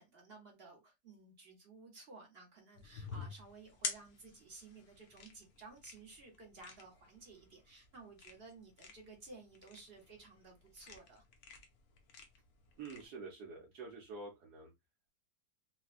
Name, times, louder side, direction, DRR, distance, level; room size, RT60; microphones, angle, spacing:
voice 1, 0.0-11.2, right 3 dB, 40° right, 0.9 m, -55 dB
sound 1, 2.7-13.0, left 5 dB, 65° left, 1.1 m, -49 dB
voice 2, 12.8-14.7, right 3 dB, 65° right, 1.2 m, -47 dB
4.0 x 2.1 x 2.4 m
omnidirectional pair, 2.0 m